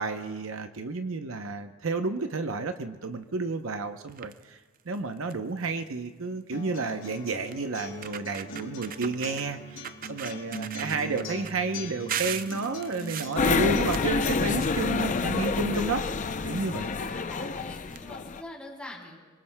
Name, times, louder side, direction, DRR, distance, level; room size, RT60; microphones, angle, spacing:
voice 1, 0.0-4.6 4.9-16.1 16.4-16.9, right 3 dB, 70° right, 7 dB, 0.7 m, -31 dB
sound 1, 4.1-4.4 4.9-5.0 5.3-5.6 6.8-6.9 7.5-7.6 7.9-9.5 9.8-11.5 12.1-14.9 15.2-16.3 17.2-17.3 17.6-17.7 17.9-18.0, right 9 dB, 40° right, 0.4 m, -38 dB
Acoustic guitar, 6.5-14.5, equal, 65° left, 5.0 m, -41 dB
sound 2, 13.4-18.4, left 4 dB, 35° left, 0.5 m, -28 dB
voice 2, 16.9-19.2, left 1 dB, 5° left, -3 dB, 3.4 m, -44 dB
26.5 x 24.0 x 2.2 m, 1.3 s
head